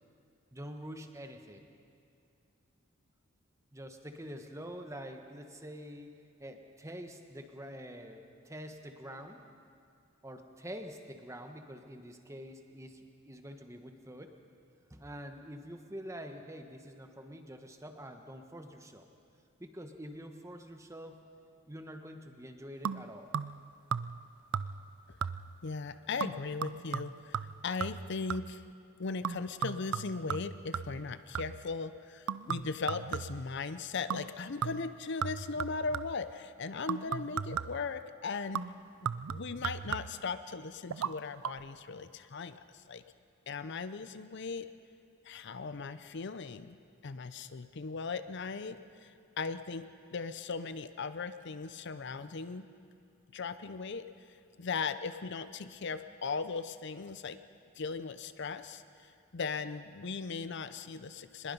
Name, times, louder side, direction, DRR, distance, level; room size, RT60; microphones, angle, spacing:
voice 1, 0.5-1.7 3.7-9.4 10.2-14.4 14.9-19.1 19.6-21.2 21.7-23.3, equal, 15° right, 6 dB, 1.2 m, -46 dB
sound 1, 22.8-23.6 23.9-24.3 24.5-24.9 25.2-25.6 26.2-28.6 29.2-31.7 32.3-33.5 34.1-34.3 34.6-36.3 36.9-37.9 38.5-40.3 40.9-41.1 41.4-41.5, right 7 dB, 85° right, 0.5 m, -37 dB
voice 2, 25.6-28.6 29.0-38.7 39.3-43.0 43.5-44.7 45.2-46.8 47.0-52.7 53.3-54.0 54.6-57.4 57.8-61.5, left 4 dB, 55° left, 12 dB, 0.6 m, -38 dB
24.0 x 21.0 x 5.5 m, 2.4 s
head